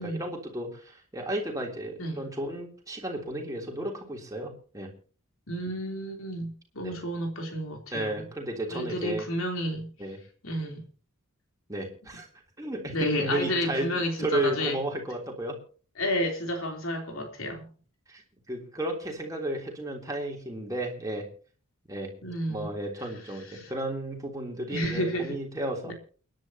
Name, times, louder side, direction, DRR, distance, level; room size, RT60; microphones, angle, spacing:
voice 1, 0.0-4.9 6.8-7.0 7.9-9.3 10.0-10.2 11.7-12.3 12.6-13.9 14.2-15.6 18.1-18.2 18.5-21.3 21.9-22.1 22.5-25.9, right 1 dB, 15° right, 3.3 m, -33 dB
voice 2, 5.5-8.2 8.7-9.9 10.4-10.8 12.9-14.8 16.0-17.7 22.2-22.7 23.5-23.7 24.7-25.4 25.9-26.0, equal, 65° left, 3.5 m, -31 dB
29.0 x 10.5 x 2.9 m
head